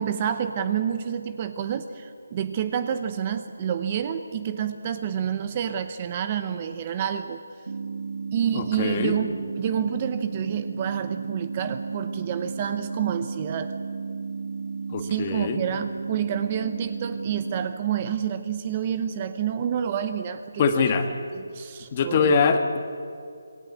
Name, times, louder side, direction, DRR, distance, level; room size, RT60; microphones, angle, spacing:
voice 1, 0.0-7.4 8.3-13.7 15.0-20.9 21.3-22.3, right 9 dB, 25° right, 10 dB, 0.8 m, -28 dB
sound 1, 7.7-17.7, right 5 dB, 70° right, 1.2 m, -33 dB
voice 2, 8.5-9.1 14.9-15.6 20.6-21.1 21.9-22.8, left 5 dB, 25° left, 7 dB, 1.6 m, -23 dB
27.0 x 20.5 x 8.4 m, 2.4 s
hypercardioid pair, 170°, 0 cm